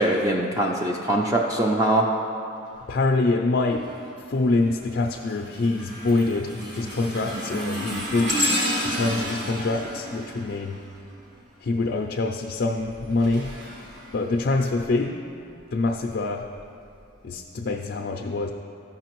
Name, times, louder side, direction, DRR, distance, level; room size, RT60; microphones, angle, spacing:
voice 1, 0.0-2.0, right 1 dB, 15° right, -1 dB, 0.4 m, -22 dB
voice 2, 2.9-3.9 4.3-10.8 11.6-13.5 14.1-15.3 15.7-16.5 17.2-18.5, left 3 dB, 55° left, 2 dB, 0.4 m, -25 dB
sound 1, 3.7-4.1 4.6-11.4 12.6-14.9 15.5-15.7 16.6-16.7, equal, 55° right, 1.5 m, -31 dB
13.5 x 5.7 x 3.0 m, 2.7 s
head